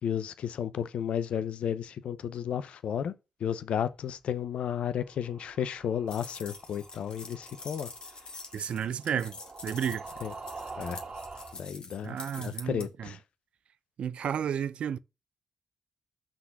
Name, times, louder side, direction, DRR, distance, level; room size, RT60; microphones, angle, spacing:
voice 1, 0.0-3.1 3.4-7.9 10.2-10.3 10.8-11.0 11.5-13.2, left 9 dB, 70° left, 0.6 m, -33 dB
sound 1, 4.9-11.6, right 3 dB, 45° right, 1.8 m, -46 dB
sound 2, 6.1-12.9, left 3 dB, 45° left, 1.5 m, -46 dB
voice 2, 8.5-9.4 9.6-10.0 12.0-13.1 14.0-15.0, right 8 dB, 65° right, 0.4 m, -32 dB
5.9 x 3.9 x 5.8 m
hypercardioid pair, 40°, 2 cm